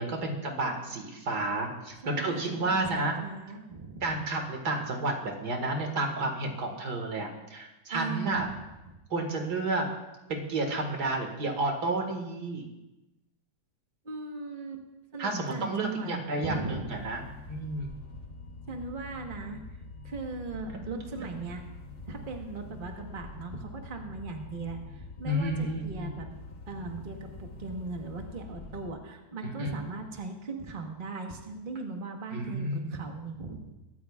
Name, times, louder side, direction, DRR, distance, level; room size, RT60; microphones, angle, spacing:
voice 1, 0.0-3.2 4.0-8.5 9.1-9.8 10.3-12.6 15.2-17.2 17.5-17.9 20.7-20.8 25.2-26.1 29.4-29.8 32.3-33.0, right 2 dB, 85° right, 3 dB, 2.3 m, -31 dB
voice 2, 2.0-2.9 3.2-4.2 7.9-8.5 14.0-14.8 15.1-16.1 16.4-16.9 18.7-19.6 20.0-21.6 22.1-26.3 26.7-33.7, right 3 dB, 35° right, 3 dB, 1.4 m, -38 dB
sound 1, 16.9-28.9, left 3 dB, 50° left, 1.6 m, -45 dB
24.0 x 13.5 x 2.4 m, 1.0 s
omnidirectional pair, 1.7 m